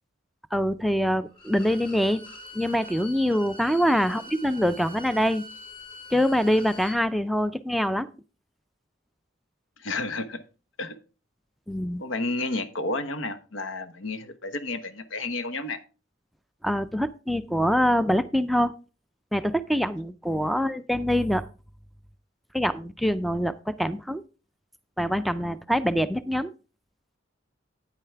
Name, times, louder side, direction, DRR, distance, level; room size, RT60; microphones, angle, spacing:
voice 1, 0.5-2.2 2.5-5.4 6.1-8.1 11.7-12.0 16.6-18.7 19.3-21.5 22.5-24.2 25.0-26.5, equal, ahead, 13 dB, 0.3 m, -24 dB
Bowed string instrument, 1.3-7.0, left 2 dB, 25° left, 3.1 m, -44 dB
voice 2, 9.8-10.4 10.8-11.0 12.0-15.8 20.6-20.7, left 2 dB, 85° left, 10 dB, 1.0 m, -31 dB
9.3 x 9.0 x 3.4 m, 0.34 s
head